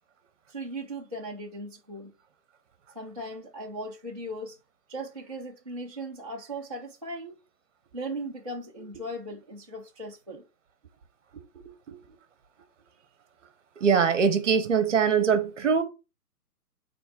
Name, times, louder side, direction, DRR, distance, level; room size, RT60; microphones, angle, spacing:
voice 1, 0.5-2.1 2.9-4.6 4.9-7.3 7.9-10.4, right 1 dB, 25° right, 0.5 m, -38 dB
voice 2, 11.5-12.0 13.8-15.8, right 6 dB, 50° right, 1.0 m, -23 dB
6.8 x 3.3 x 4.2 m
hypercardioid pair, 160°, 48 cm